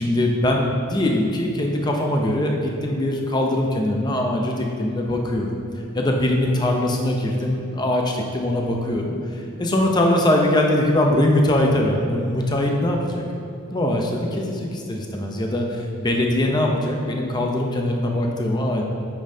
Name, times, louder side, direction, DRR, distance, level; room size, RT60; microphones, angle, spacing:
voice 1, 0.0-5.5 5.9-13.2 13.7-18.8, left 1 dB, 20° left, 1 dB, 0.6 m, -22 dB
8.7 x 5.3 x 2.7 m, 2.7 s
head